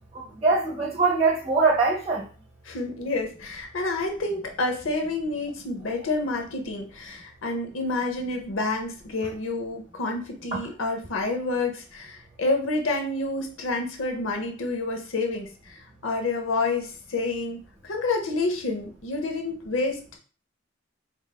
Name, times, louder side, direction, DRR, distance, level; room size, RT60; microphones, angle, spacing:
voice 1, 0.1-2.2, right 4 dB, 30° right, -1 dB, 0.8 m, -22 dB
voice 2, 2.7-17.6 17.8-20.0, left 3 dB, 80° left, 3 dB, 0.7 m, -28 dB
4.4 x 3.1 x 2.2 m, 0.38 s
head